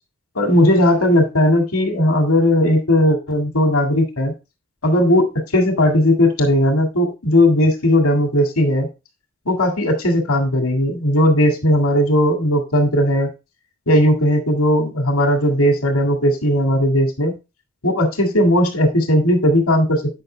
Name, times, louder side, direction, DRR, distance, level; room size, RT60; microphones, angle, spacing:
voice 1, 0.4-4.3 4.8-5.2 5.5-8.9 9.5-13.3 13.9-17.3 17.8-20.2, left 1 dB, 90° left, 4 dB, 2.1 m, -17 dB
8.9 x 5.8 x 3.3 m, 0.27 s
head